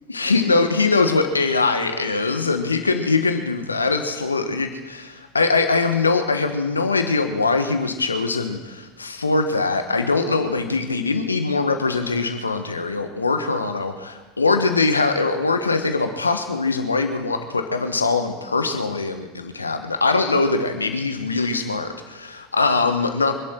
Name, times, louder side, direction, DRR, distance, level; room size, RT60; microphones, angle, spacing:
voice 1, 0.1-23.3, left 3 dB, 85° left, 7 dB, 1.5 m, -22 dB
25.5 x 11.0 x 4.6 m, 1.2 s
figure-of-eight pair, 75°, 0 cm